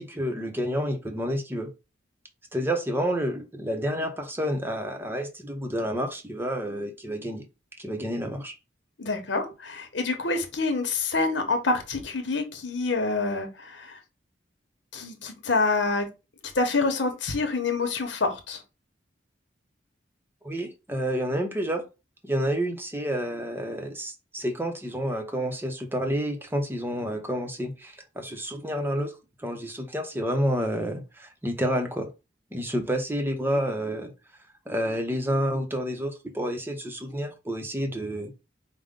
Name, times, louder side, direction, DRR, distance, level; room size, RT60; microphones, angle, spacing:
voice 1, 0.0-1.7 2.5-7.5 7.8-8.5 20.4-21.8 22.2-29.1 29.4-32.1 32.5-34.1 34.7-38.4, equal, 10° right, 0.7 m, -29 dB
voice 2, 9.0-14.0 14.9-16.1 16.5-18.6, left 3 dB, 80° left, 1.0 m, -27 dB
5.0 x 2.2 x 3.6 m
head